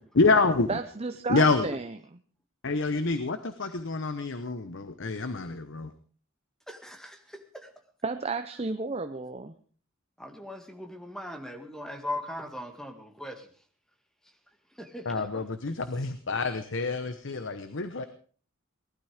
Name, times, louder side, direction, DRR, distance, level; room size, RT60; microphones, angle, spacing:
voice 1, 0.2-0.7 1.3-1.7 2.6-5.9 15.0-18.0, left 3 dB, 60° left, 10 dB, 1.0 m, -27 dB
voice 2, 0.7-2.0 8.0-9.5, right 3 dB, 30° right, 7 dB, 0.7 m, -32 dB
voice 3, 6.7-7.7 10.2-13.5 14.8-15.4, left 1 dB, 5° left, 5 dB, 1.8 m, -39 dB
19.0 x 12.0 x 5.0 m, 0.43 s
head